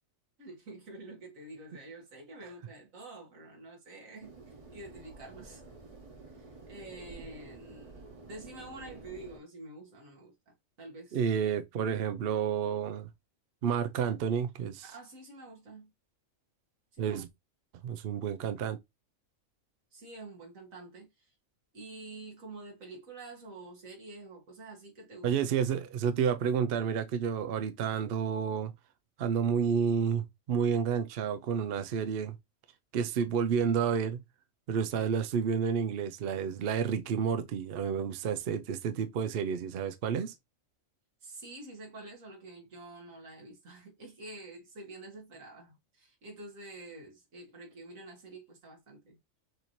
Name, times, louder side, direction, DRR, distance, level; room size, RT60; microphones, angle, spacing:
voice 1, 0.4-5.6 6.3-11.3 14.9-15.9 16.9-17.2 19.9-21.3 21.7-25.3 41.2-49.2, right 2 dB, 85° right, 2.0 m, -48 dB
sound 1, 4.2-9.4, right 3 dB, 30° right, 0.9 m, -50 dB
voice 2, 11.1-13.1 13.6-14.8 17.0-17.3 17.8-18.8 25.2-28.7 29.2-32.4 32.9-34.2 34.7-40.3, right 7 dB, 60° right, 0.7 m, -30 dB
6.3 x 2.8 x 3.0 m
omnidirectional pair, 1.4 m